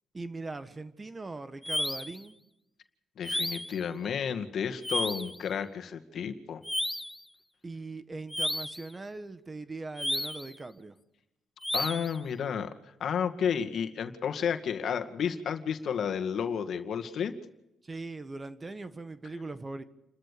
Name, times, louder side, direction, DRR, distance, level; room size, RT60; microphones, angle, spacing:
voice 1, 0.1-2.4 7.6-11.0 17.8-19.8, right 3 dB, 25° right, 11 dB, 1.6 m, -40 dB
sound 1, 1.6-2.2 3.2-3.8 4.8-5.4 6.6-7.2 8.3-8.9 10.0-10.5 11.6-12.2, left 1 dB, 5° left, 0.7 m, -32 dB
voice 2, 3.2-6.6 11.7-12.7 13.0-17.3, left 7 dB, 60° left, 8 dB, 2.1 m, -31 dB
29.5 x 13.5 x 6.9 m, 0.89 s
cardioid pair, 90°, 0 cm